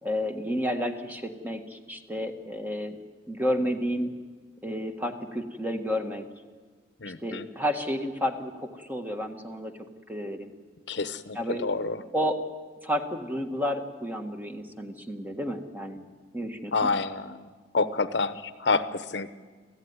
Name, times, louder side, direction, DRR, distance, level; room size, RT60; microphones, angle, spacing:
voice 1, 0.0-3.0 3.3-4.1 4.6-6.3 7.2-9.7 10.1-10.5 11.3-11.6 12.1-12.4 12.8-16.0 16.3-16.9, equal, 10° right, 5 dB, 1.6 m, -31 dB
voice 2, 7.0-7.5 10.9-12.0 16.7-19.3, left 4 dB, 70° left, 12 dB, 0.9 m, -28 dB
27.0 x 15.5 x 9.7 m, 1.5 s
head